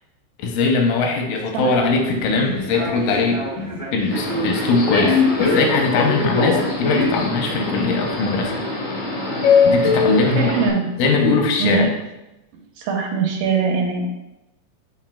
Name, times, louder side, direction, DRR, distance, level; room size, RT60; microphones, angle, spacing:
voice 1, 0.4-8.6 9.7-10.5 11.0-11.9, left 3 dB, 90° left, 3 dB, 2.3 m, -21 dB
Human voice / Subway metro underground, 1.8-7.3, right 1 dB, 25° left, 1.3 m, -32 dB
Subway metro underground, 4.1-10.7, left 4 dB, 60° left, 1.2 m, -21 dB
voice 2, 10.4-10.9 11.6-11.9 12.8-14.1, right 5 dB, 80° right, 0 dB, 2.6 m, -21 dB
10.0 x 4.3 x 2.2 m, 0.96 s
omnidirectional pair, 3.8 m